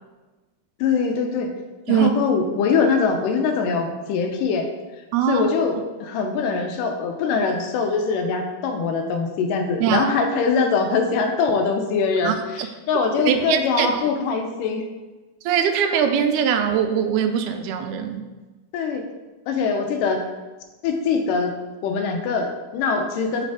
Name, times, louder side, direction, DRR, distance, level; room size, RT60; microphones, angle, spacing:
voice 1, 0.8-1.5 1.9-4.7 5.3-14.9 18.7-19.1 19.5-20.2 20.8-21.5 21.8-23.4, left 5 dB, 85° left, 4 dB, 2.2 m, -23 dB
voice 2, 5.1-5.5 9.8-10.0 12.2-12.7 13.2-14.0 15.5-18.2, right 8 dB, 80° right, 6 dB, 1.9 m, -21 dB
6.4 x 3.4 x 4.7 m, 1.2 s
omnidirectional pair, 3.8 m